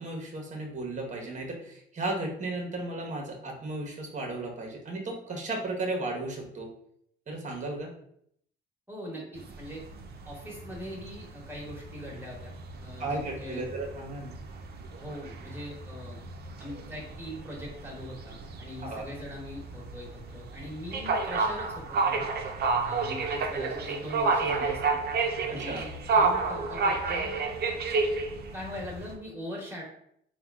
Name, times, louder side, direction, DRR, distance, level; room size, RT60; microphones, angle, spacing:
voice 1, 0.0-6.7 7.3-7.9 13.0-14.3 18.8-19.0 25.5-25.8, right 2 dB, 40° right, 1 dB, 1.0 m, -35 dB
voice 2, 8.9-9.8 10.2-12.5 12.8-13.7 15.0-16.3 16.6-22.3 22.8-25.0 25.5-27.3 28.5-29.8, left 1 dB, 10° right, -3 dB, 1.4 m, -41 dB
sound 1, 9.3-29.1, right 4 dB, 55° right, 0.5 m, -31 dB
3.5 x 2.2 x 3.5 m, 0.70 s
cardioid pair, 90°, 20 cm